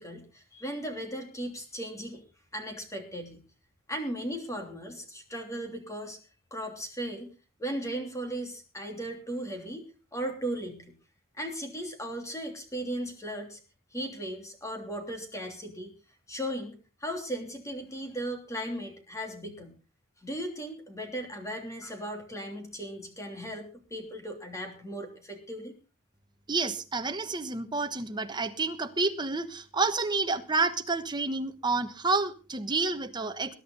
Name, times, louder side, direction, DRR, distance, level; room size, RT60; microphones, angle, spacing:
voice 1, 0.0-2.2 2.5-3.4 3.9-6.2 6.5-7.3 7.6-10.9 11.4-13.6 13.9-15.9 16.3-19.7 20.2-25.7, right 1 dB, 15° left, 4 dB, 3.0 m, -37 dB
voice 2, 26.5-33.5, right 3 dB, 20° right, 8 dB, 1.2 m, -29 dB
21.0 x 11.0 x 3.9 m, 0.33 s
head